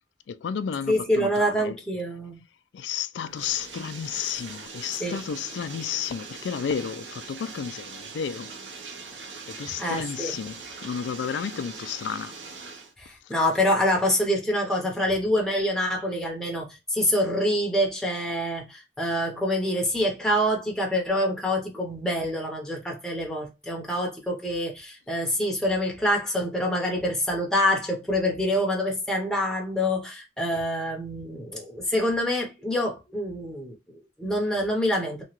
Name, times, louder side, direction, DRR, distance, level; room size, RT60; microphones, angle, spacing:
voice 1, 0.3-1.8 2.7-8.5 9.5-12.4 13.2-13.3, left 7 dB, 75° left, 0.3 m, -32 dB
voice 2, 0.9-2.4 5.0-5.2 9.8-10.3 13.0-35.2, equal, 5° left, 0.7 m, -26 dB
Bathtub (filling or washing), 3.2-12.9, right 4 dB, 85° right, 0.7 m, -41 dB
2.8 x 2.3 x 2.9 m
head